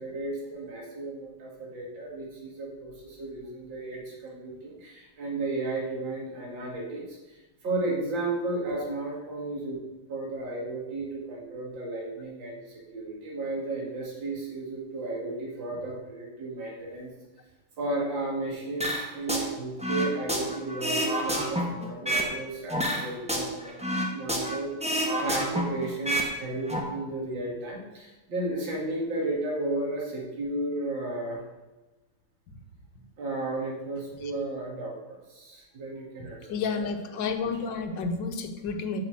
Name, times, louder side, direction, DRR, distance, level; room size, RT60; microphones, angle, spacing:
voice 1, 0.0-9.8 10.1-17.1 17.8-24.7 25.2-31.4 33.2-36.9, right 2 dB, 85° right, -3 dB, 2.8 m, -34 dB
sound 1, 18.8-19.5 19.8-22.3 22.7-24.6 24.8-26.3 26.6-26.8, equal, 5° right, 1.1 m, -28 dB
voice 2, 36.5-39.0, left 4 dB, 80° left, 6 dB, 1.7 m, -31 dB
8.0 x 5.9 x 7.4 m, 1.1 s
omnidirectional pair, 2.0 m